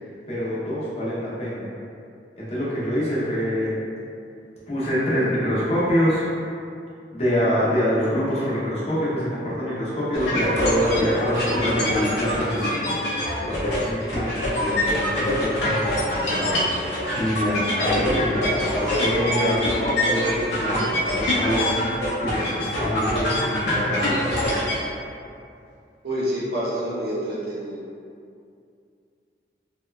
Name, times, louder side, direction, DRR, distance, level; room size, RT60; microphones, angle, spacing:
voice 1, 0.3-1.7 2.4-3.8 4.7-6.3 7.1-24.7, equal, 35° left, -9 dB, 0.6 m, -25 dB
sound 1, 10.1-24.8, left 1 dB, 75° left, 0.6 m, -24 dB
voice 2, 26.0-27.8, equal, 60° right, -8 dB, 0.6 m, -27 dB
2.8 x 2.2 x 2.2 m, 2.4 s
head